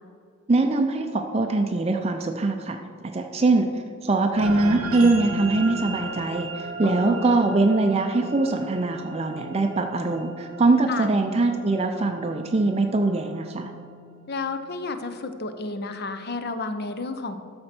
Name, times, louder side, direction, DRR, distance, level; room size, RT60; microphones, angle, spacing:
voice 1, 0.5-2.8 3.1-13.7, right 2 dB, 30° right, 5 dB, 0.4 m, -22 dB
sound 1, 4.3-15.0, right 3 dB, 85° right, 0.9 m, -37 dB
voice 2, 6.8-7.2 10.9-11.1 14.3-17.3, left 3 dB, 50° left, 9 dB, 0.7 m, -31 dB
13.0 x 4.4 x 5.9 m, 2.3 s
head